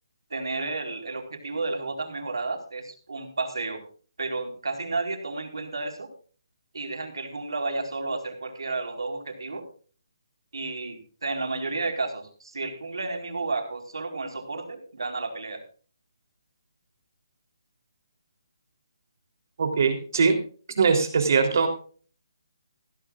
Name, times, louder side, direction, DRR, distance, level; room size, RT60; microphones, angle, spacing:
voice 1, 0.3-3.8 4.2-6.1 6.7-9.7 10.5-15.6, right 3 dB, 85° right, 5 dB, 4.2 m, -32 dB
voice 2, 19.6-20.3 20.8-21.7, right 5 dB, 45° right, 5 dB, 3.3 m, -21 dB
15.5 x 15.5 x 2.4 m, 0.41 s
hypercardioid pair, 170°, 2 cm